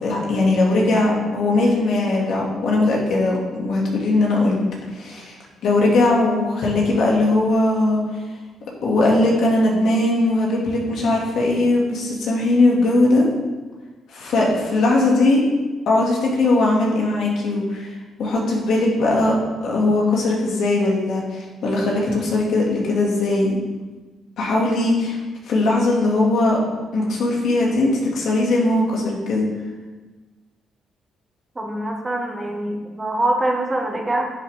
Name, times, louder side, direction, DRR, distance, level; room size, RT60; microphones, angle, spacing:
voice 1, 0.0-4.6 4.9-5.3 5.6-8.0 8.8-13.2 14.1-15.4 15.9-17.9 18.2-19.4 19.6-23.6 24.4-25.2 25.5-26.6 26.9-29.5, left 2 dB, 70° left, -2 dB, 2.3 m, -19 dB
voice 2, 31.5-34.3, right 1 dB, 20° right, 1 dB, 1.5 m, -24 dB
9.8 x 7.3 x 3.6 m, 1.3 s
cardioid pair, 90°, 0 cm